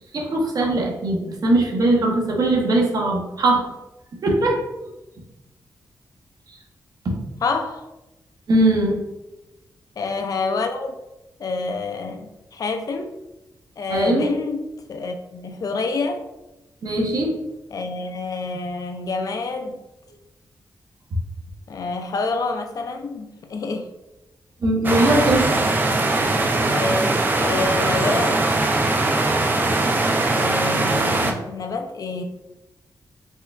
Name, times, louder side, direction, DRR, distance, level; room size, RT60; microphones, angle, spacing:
voice 1, 0.1-3.7 4.2-4.6 7.0-7.2 8.5-9.0 13.9-14.3 16.8-17.3 24.6-25.6, right 1 dB, 60° right, 0 dB, 0.8 m, -20 dB
voice 2, 7.4-7.9 10.0-10.9 11.4-13.1 13.8-16.3 17.7-19.8 21.7-23.9 26.6-28.5 30.3-32.2, left 3 dB, 55° left, 6 dB, 0.4 m, -27 dB
sound 1, 24.8-31.3, right 2 dB, 25° right, 0.4 m, -21 dB
4.5 x 2.3 x 3.3 m, 0.99 s
wide cardioid pair, 135°, 7 cm